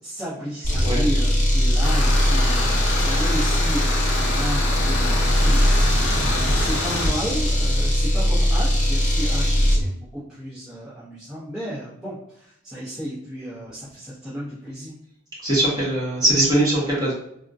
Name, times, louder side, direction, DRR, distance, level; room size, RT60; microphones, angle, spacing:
voice 1, 0.0-14.9, equal, 5° right, -12 dB, 0.9 m, -33 dB
sound 1, 0.6-9.8, equal, 40° left, 0.8 m, -20 dB
sound 2, 1.8-7.1, left 2 dB, 75° left, 0.7 m, -27 dB
voice 2, 15.4-17.1, right 1 dB, 20° right, -7 dB, 1.4 m, -21 dB
3.5 x 2.4 x 2.6 m, 0.73 s
head